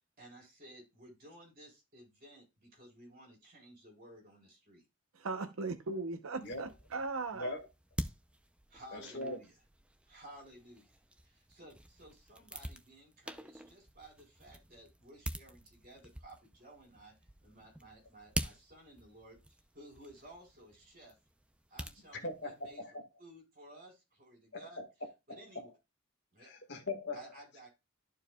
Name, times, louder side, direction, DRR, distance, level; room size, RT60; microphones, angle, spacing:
voice 1, 0.2-4.8 8.7-9.5 10.1-10.9 11.2-17.1 17.4-19.4 19.7-21.1 21.7-22.8 23.2-24.8 25.3-25.7 26.3-26.5 27.1-27.7, right 1 dB, 45° right, 4.0 m, -55 dB
voice 2, 5.1-7.5, right 3 dB, 80° right, 0.8 m, -38 dB
sound 1, 6.3-22.8, right 1 dB, 5° right, 0.5 m, -46 dB
voice 3, 8.9-9.4 22.2-23.0 24.5-25.7 26.4-27.2, left 2 dB, 55° left, 1.8 m, -41 dB
13.0 x 4.7 x 2.3 m
head